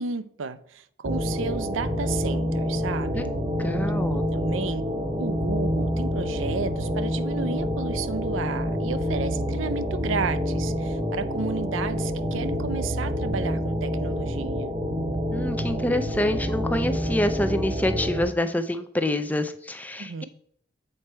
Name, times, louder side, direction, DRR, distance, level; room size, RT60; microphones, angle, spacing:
voice 1, 0.0-3.3 4.1-4.8 5.2-14.8 19.9-20.2, right 4 dB, 90° right, 0.5 m, -32 dB
sound 1, 1.0-18.2, equal, 20° right, 0.9 m, -27 dB
voice 2, 3.6-4.3 15.3-20.2, left 1 dB, 10° left, 0.4 m, -26 dB
7.8 x 4.3 x 4.4 m
head